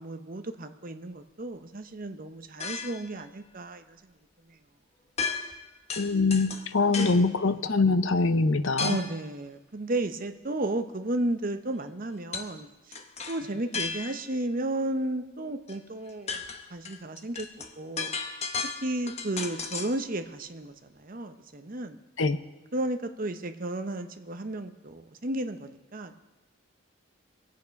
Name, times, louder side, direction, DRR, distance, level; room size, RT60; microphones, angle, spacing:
voice 1, 0.0-4.1 4.5-4.6 6.9-7.6 8.8-13.0 13.3-16.4 16.7-17.5 17.8-18.1 18.8-22.0 22.7-26.2, right 1 dB, 40° right, 8 dB, 0.8 m, -33 dB
sound 1, 2.6-3.1 5.2-5.6 5.9-7.3 8.8-9.2 12.3-12.5 12.9-14.3 15.7-15.8 16.1-20.0, left 5 dB, 30° left, 0.9 m, -35 dB
voice 2, 6.0-9.0 22.2-22.4, left 3 dB, 65° left, 12 dB, 0.7 m, -24 dB
24.0 x 8.5 x 5.3 m, 1.1 s
head